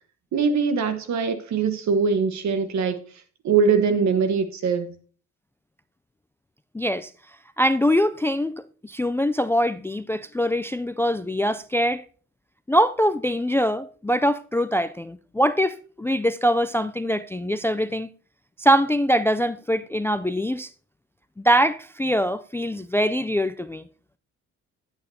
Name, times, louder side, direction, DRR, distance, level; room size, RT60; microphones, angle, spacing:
voice 1, 0.3-3.0 3.4-4.9, right 5 dB, 65° right, 1.3 m, -22 dB
voice 2, 6.7-7.1 7.6-12.0 12.7-18.1 18.6-20.7 21.4-23.8, equal, 10° left, 0.3 m, -23 dB
10.0 x 8.8 x 2.8 m
cardioid pair, 90°, 30 cm